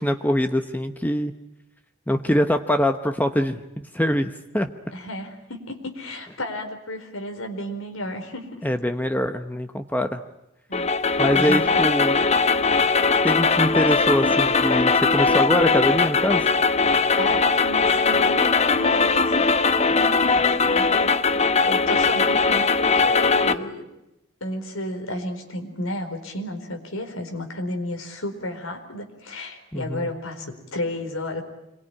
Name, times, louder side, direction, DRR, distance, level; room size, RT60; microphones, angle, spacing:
voice 1, 0.0-1.3 2.1-4.7 8.6-10.2 11.2-12.2 13.2-16.5 29.7-30.1, equal, 10° left, 7 dB, 0.9 m, -23 dB
voice 2, 4.9-8.6 10.7-11.6 17.1-19.6 19.9-23.8 24.4-31.4, left 1 dB, 85° left, 5 dB, 4.5 m, -33 dB
sound 1, 10.7-23.6, left 4 dB, 30° left, 1.0 m, -20 dB
26.5 x 22.5 x 9.9 m, 0.89 s
head